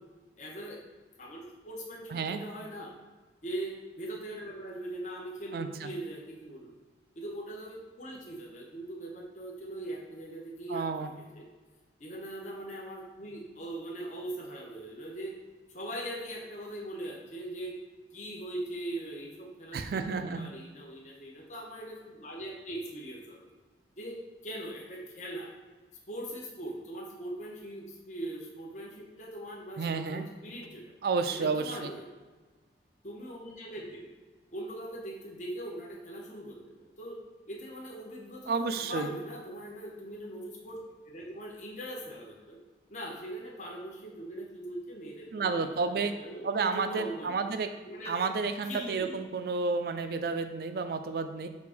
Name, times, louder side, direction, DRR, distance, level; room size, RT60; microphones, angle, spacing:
voice 1, 0.4-0.8 1.2-2.9 3.4-6.7 7.1-11.5 12.0-15.3 15.7-17.7 18.1-23.4 24.0-25.5 26.1-30.8 31.3-32.0 33.0-34.1 34.5-37.2 37.5-40.8 41.1-42.6 42.9-47.5 47.8-48.3 48.7-49.2, right 1 dB, 40° left, -3 dB, 0.7 m, -41 dB
voice 2, 5.5-5.9 10.7-11.1 19.7-20.5 29.8-30.2 31.0-31.9 38.5-39.1 45.3-46.1 46.4-47.7 48.1-51.5, right 4 dB, 55° right, 8 dB, 0.3 m, -31 dB
5.0 x 2.5 x 3.4 m, 1.3 s
head